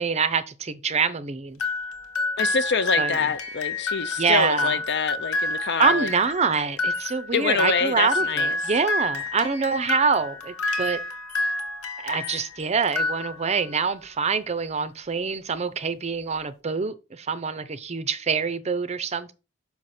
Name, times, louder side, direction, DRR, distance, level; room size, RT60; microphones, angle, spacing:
voice 1, 0.0-1.6 3.0-3.1 4.2-4.8 5.8-11.0 12.0-19.3, right 5 dB, 30° right, 0.5 m, -25 dB
sound 1, 1.6-12.5 12.8-13.7, left 2 dB, 75° left, 1.2 m, -29 dB
voice 2, 2.4-6.1 7.3-8.7, left 5 dB, 50° left, 0.6 m, -26 dB
6.3 x 5.7 x 4.3 m
head